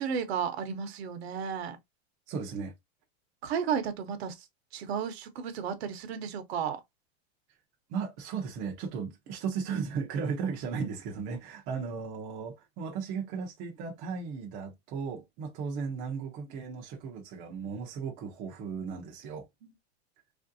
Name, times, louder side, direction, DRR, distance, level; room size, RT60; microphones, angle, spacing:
voice 1, 0.0-1.8 3.4-4.5 4.7-6.8 19.6-19.7, right 7 dB, 65° right, 0.8 m, -33 dB
voice 2, 2.3-2.7 7.9-19.5, right 5 dB, 25° right, 0.5 m, -36 dB
3.2 x 2.6 x 2.5 m
supercardioid pair, 170°, 34 cm